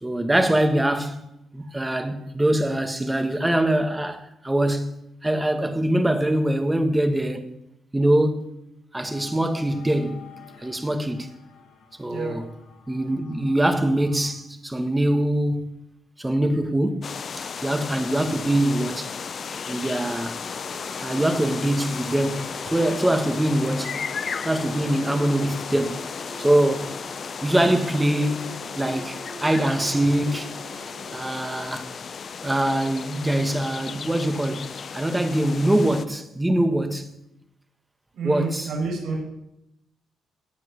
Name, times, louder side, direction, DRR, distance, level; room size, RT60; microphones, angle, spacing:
voice 1, 0.0-4.9 5.2-7.5 7.9-8.6 8.9-10.2 10.6-11.3 12.0-12.5 12.9-15.7 16.2-19.1 19.7-20.4 21.0-24.0 24.5-26.0 26.4-27.0 27.4-30.6 31.1-31.9 32.4-37.1 38.2-38.7, right 1 dB, 10° right, 1.8 m, -23 dB
sound 1, 9.0-14.3, left 7 dB, 75° left, 4.3 m, -48 dB
voice 2, 12.1-12.4 38.1-39.2, right 4 dB, 70° right, 5.9 m, -29 dB
sound 2, 17.0-36.1, left 6 dB, 45° left, 0.8 m, -34 dB
sound 3, 20.0-31.6, right 4 dB, 50° right, 5.1 m, -46 dB
17.5 x 5.9 x 9.8 m
cardioid pair, 90°, 0 cm